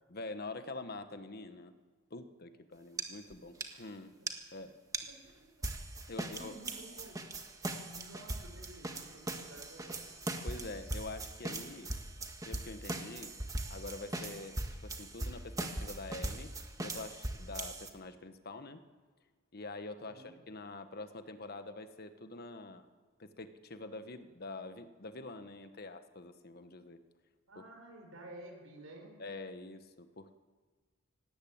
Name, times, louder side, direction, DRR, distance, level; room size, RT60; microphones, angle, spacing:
voice 1, 0.1-1.7 2.1-4.2 4.5-4.7 6.1-6.6 10.4-11.9 12.4-13.4 13.7-16.5 16.8-18.8 19.5-22.9 23.2-27.0 29.2-30.3, left 2 dB, 50° left, 9 dB, 1.3 m, -45 dB
sound 1, 3.0-3.1 3.3-3.4 3.6-3.7 4.3-4.4 4.9-5.0 5.6-17.9, right 2 dB, 15° right, 1.6 m, -40 dB
voice 2, 5.1-5.7 6.2-7.2 7.9-10.1 20.0-20.3 27.5-29.2, right 1 dB, 80° right, 3 dB, 5.7 m, -52 dB
18.0 x 18.0 x 8.7 m, 1.4 s
head